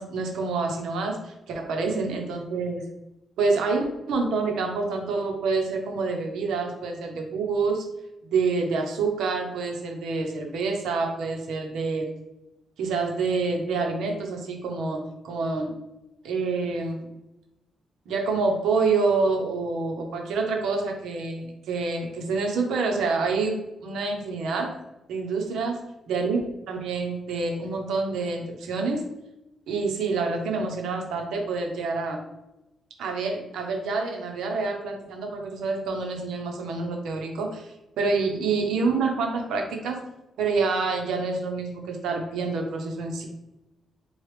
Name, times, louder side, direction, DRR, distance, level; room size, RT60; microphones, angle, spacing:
voice 1, 0.0-2.8 3.4-7.9 8.3-12.1 12.8-15.7 16.2-17.1 18.1-24.7 25.1-25.8 26.1-29.0 29.7-32.2 33.0-37.7 38.0-40.1 40.4-43.3, right 4 dB, 85° right, 2 dB, 0.8 m, -27 dB
4.7 x 2.4 x 3.3 m, 0.94 s
cardioid pair, 105°, 0 cm